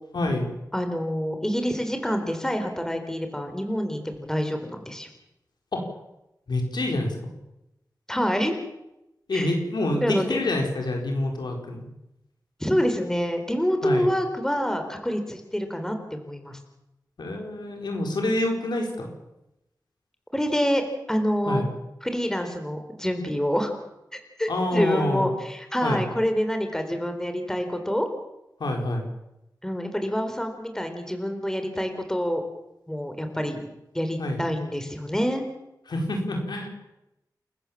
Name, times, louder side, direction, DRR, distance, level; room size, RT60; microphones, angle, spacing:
voice 1, 0.1-0.5 5.7-5.8 6.5-7.3 9.3-11.9 13.8-14.1 17.2-19.1 21.5-21.7 24.5-25.3 25.8-26.0 28.6-29.0 34.2-34.4 35.9-36.7, left 1 dB, 85° left, 2 dB, 4.7 m, -27 dB
voice 2, 0.7-5.1 8.1-8.5 9.3-9.6 10.0-10.4 12.6-16.6 20.3-20.8 21.1-21.6 22.0-23.7 24.1-28.1 29.6-32.4 32.9-33.6 33.9-35.4, equal, 5° left, 6 dB, 4.0 m, -27 dB
28.5 x 14.5 x 7.4 m, 0.90 s
wide cardioid pair, 70°, 7 cm